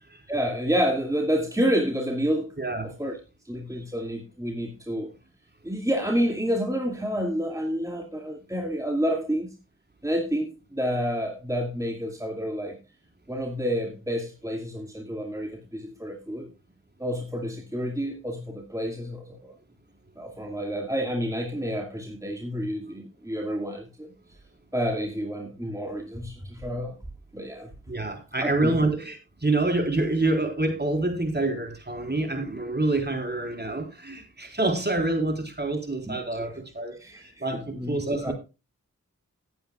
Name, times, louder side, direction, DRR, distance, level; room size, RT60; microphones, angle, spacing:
voice 1, 0.3-2.5 3.0-3.1 3.5-5.1 5.6-9.5 10.0-12.8 13.3-16.5 17.0-19.5 20.2-24.1 24.7-27.0 27.3-27.7 28.4-28.8 36.1-36.5 37.0-37.2 37.7-38.3, equal, 10° right, 2 dB, 2.3 m, -29 dB
voice 2, 2.6-2.9 3.7-3.8 27.9-38.3, right 2 dB, 30° right, 4 dB, 4.0 m, -27 dB
18.0 x 9.3 x 2.3 m, 0.28 s
cardioid pair, 40°, 32 cm